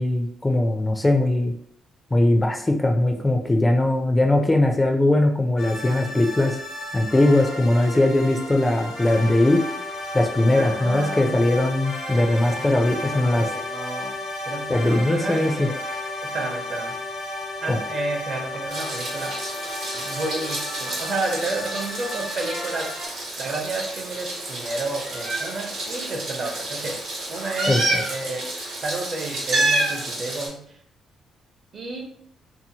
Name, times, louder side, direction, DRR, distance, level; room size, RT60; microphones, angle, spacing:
voice 1, 0.0-1.5 2.1-6.6 6.9-9.6 10.1-13.5 14.7-15.7 17.7-17.8 27.7-27.8, left 1 dB, 15° left, 4 dB, 0.4 m, -20 dB
sound 1, 5.6-23.1, left 2 dB, 85° left, 1.1 m, -33 dB
voice 2, 10.6-11.8 12.6-12.7 13.0-14.1 14.5-17.0 17.6-19.4 19.9-23.0 23.4-27.0 27.3-28.5 28.8-30.7 31.7-32.1, right 2 dB, 55° right, 1 dB, 0.7 m, -31 dB
Meow, 18.7-30.5, right 2 dB, 80° right, 1.0 m, -29 dB
2.7 x 2.0 x 2.7 m, 0.67 s
cardioid pair, 90°, 0 cm